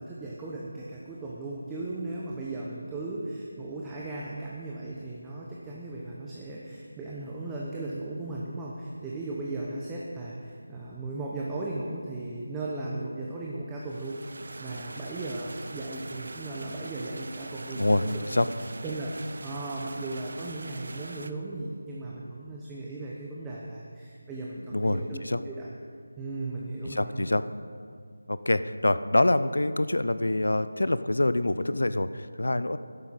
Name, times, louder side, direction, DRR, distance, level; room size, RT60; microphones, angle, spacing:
voice 1, 0.0-14.2 14.6-18.5 18.8-19.1 19.4-25.7 26.2-27.3, right 2 dB, 10° right, -5 dB, 0.9 m, -36 dB
sound 1, 13.8-21.3, right 2 dB, 60° right, 0.6 m, -42 dB
voice 2, 17.8-18.5 24.7-25.4 26.8-27.4 28.3-32.8, left 1 dB, 80° left, 13 dB, 0.6 m, -25 dB
13.5 x 10.5 x 4.1 m, 2.2 s
figure-of-eight pair, 165°, 0 cm